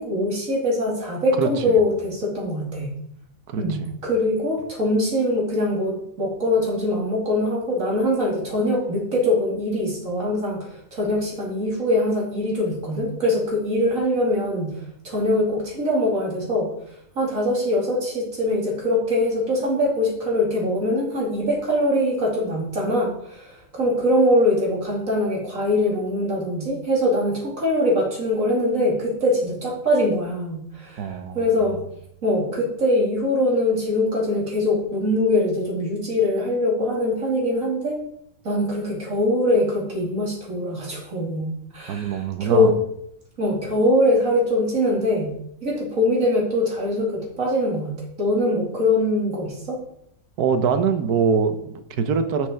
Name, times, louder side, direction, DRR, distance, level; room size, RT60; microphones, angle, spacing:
voice 1, 0.0-2.9 3.6-16.7 17.1-31.8 32.2-38.0 38.4-42.7 43.4-45.3 45.6-49.8, left 1 dB, 60° right, -2 dB, 3.1 m, -22 dB
voice 2, 31.0-31.4 41.9-42.7 50.4-52.5, right 6 dB, 85° right, 9 dB, 1.4 m, -23 dB
8.9 x 6.7 x 4.5 m, 0.73 s
omnidirectional pair, 1.6 m